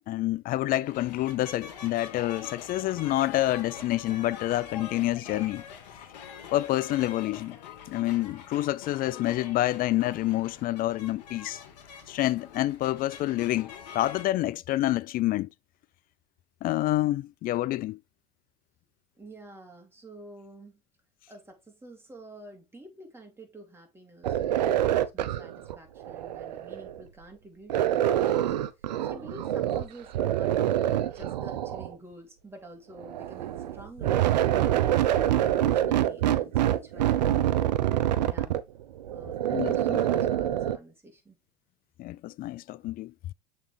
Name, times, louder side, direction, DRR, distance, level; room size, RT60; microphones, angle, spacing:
voice 1, 0.1-5.6 6.5-7.6 7.9-11.6 12.1-15.5 16.6-18.0 39.5-40.0 42.0-43.1, left 15 dB, 45° left, 0.4 m, -28 dB
sound 1, 0.8-14.3, left 7 dB, 80° left, 1.3 m, -45 dB
voice 2, 19.2-20.8 21.3-35.0 35.4-37.3 38.2-38.5 39.1-41.4, right 1 dB, 10° right, 2.7 m, -49 dB
sound 2, 24.2-27.0 27.7-29.9 30.1-31.9 33.0-40.8, right 12 dB, 90° right, 0.6 m, -26 dB
7.1 x 4.2 x 3.3 m
hypercardioid pair, 85°, 21 cm